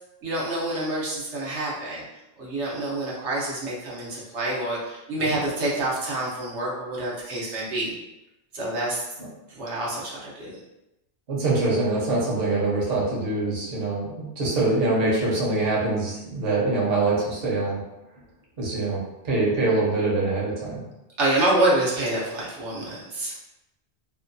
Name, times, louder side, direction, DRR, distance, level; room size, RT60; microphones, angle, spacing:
voice 1, 0.2-2.0 2.4-7.9 8.5-9.0 9.6-10.5 21.2-23.5, right 1 dB, 90° right, -6 dB, 1.1 m, -27 dB
voice 2, 11.3-17.8 18.6-20.8, right 2 dB, 60° right, -4 dB, 0.9 m, -24 dB
2.7 x 2.2 x 2.5 m, 0.92 s
omnidirectional pair, 1.2 m